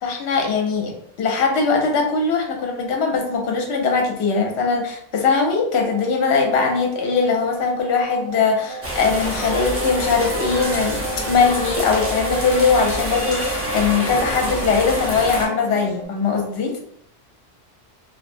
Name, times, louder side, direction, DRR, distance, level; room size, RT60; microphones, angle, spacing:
voice 1, 0.0-16.8, left 5 dB, 65° left, 2 dB, 0.9 m, -21 dB
sound 1, 5.8-16.1, right 2 dB, 85° right, 1.1 m, -33 dB
sound 2, 8.8-15.5, equal, 20° right, 0.3 m, -27 dB
2.8 x 2.0 x 2.5 m, 0.67 s
omnidirectional pair, 1.2 m